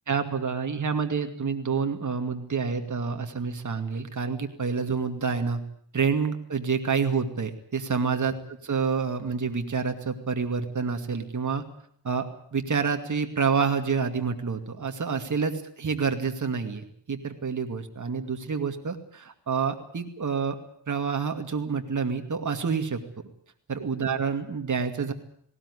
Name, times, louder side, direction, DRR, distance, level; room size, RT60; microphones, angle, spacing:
voice 1, 0.1-5.6 5.9-11.6 12.0-20.6 20.9-23.0 23.7-25.1, right 5 dB, 45° right, 5 dB, 2.4 m, -28 dB
19.0 x 18.0 x 9.8 m, 0.65 s
cardioid pair, 85°, 43 cm